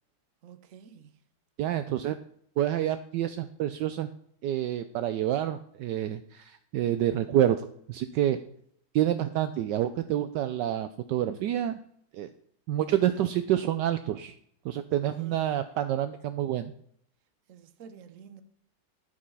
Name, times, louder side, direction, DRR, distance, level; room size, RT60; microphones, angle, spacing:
voice 1, 0.4-1.2 13.1-13.2 15.2-15.6 17.5-18.4, right 7 dB, 50° right, 1.1 m, -50 dB
voice 2, 1.6-2.2 2.6-4.1 4.4-8.4 8.9-11.8 12.1-12.3 12.7-14.3 14.6-16.7, right 11 dB, 75° right, 1.1 m, -28 dB
12.5 x 5.3 x 5.5 m
omnidirectional pair, 2.1 m